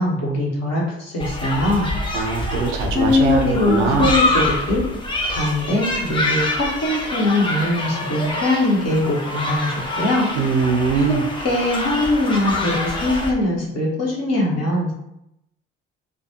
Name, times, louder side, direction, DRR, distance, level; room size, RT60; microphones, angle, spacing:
voice 1, 0.0-1.9 2.9-4.8 5.3-10.3 11.0-11.2 11.4-14.9, left 2 dB, 45° left, -3 dB, 1.0 m, -21 dB
sound 1, 1.2-13.3, left 1 dB, 15° left, 0.6 m, -25 dB
voice 2, 2.1-4.1 10.4-11.2, right 5 dB, 75° right, 3 dB, 0.5 m, -21 dB
2.5 x 2.2 x 2.7 m, 0.80 s
figure-of-eight pair, 45°, 36 cm